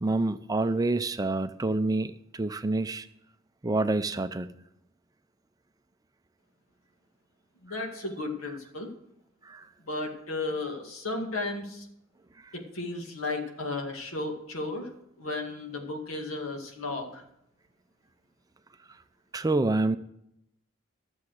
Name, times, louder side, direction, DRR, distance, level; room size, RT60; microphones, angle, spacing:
voice 1, 0.0-3.1 3.6-4.5 7.7-7.8 9.4-9.7 12.4-12.5 19.3-20.0, right 2 dB, 20° right, 11 dB, 0.4 m, -27 dB
voice 2, 7.6-8.9 9.8-11.9 12.5-14.9 15.2-17.2, left 2 dB, 90° left, 3 dB, 2.0 m, -34 dB
13.0 x 7.2 x 6.4 m, 0.79 s
head